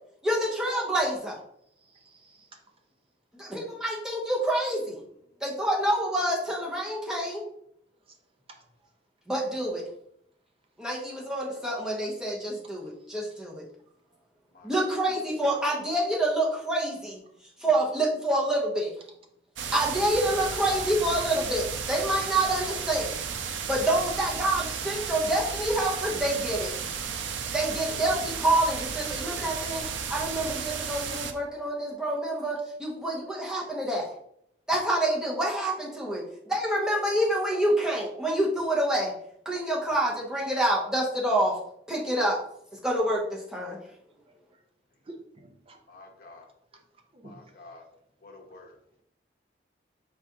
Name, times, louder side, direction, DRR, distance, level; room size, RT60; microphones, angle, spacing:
voice 1, 0.2-1.4 3.4-5.0 5.4-7.5 9.3-9.9 10.8-13.7 14.6-17.2 17.6-18.9 19.7-23.2 23.7-26.7 27.5-34.1 34.7-39.1 39.4-41.6 41.9-42.4 42.8-43.8, right 1 dB, 5° right, -4 dB, 1.0 m, -27 dB
voice 2, 1.8-2.5 31.6-31.7 45.1-45.8 47.1-47.4, right 2 dB, 30° right, 4 dB, 0.6 m, -49 dB
voice 3, 10.8-11.3 14.5-15.0 45.9-46.5 47.2-47.8 48.2-48.8, left 2 dB, 50° left, 2 dB, 0.8 m, -50 dB
sound 1, 19.6-31.3, right 6 dB, 85° right, 0.5 m, -34 dB
4.9 x 3.6 x 2.9 m, 0.72 s
head